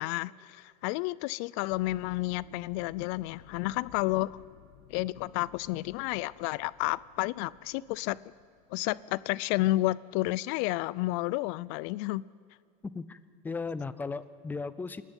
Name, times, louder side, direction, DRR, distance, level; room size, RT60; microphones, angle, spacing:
voice 1, 0.0-4.4 4.9-8.2 8.7-12.2, left 19 dB, 60° left, 21 dB, 0.4 m, -31 dB
sound 1, 1.7-9.5, left 13 dB, 75° left, 1.3 m, -57 dB
voice 2, 13.4-15.0, left 4 dB, 10° left, 14 dB, 0.6 m, -36 dB
27.0 x 11.0 x 9.1 m, 2.3 s
cardioid pair, 155°, 20 cm